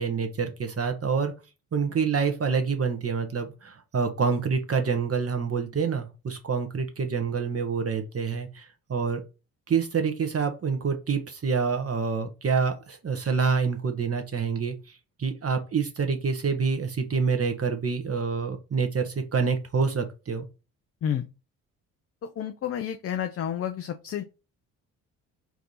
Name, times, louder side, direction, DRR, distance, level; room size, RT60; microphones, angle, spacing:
voice 1, 0.0-1.3 1.7-9.2 9.7-20.4, right 5 dB, 35° right, 1.1 m, -27 dB
voice 2, 22.2-24.2, left 9 dB, 35° left, 0.5 m, -30 dB
4.6 x 2.7 x 3.9 m
hypercardioid pair, 45°, 44 cm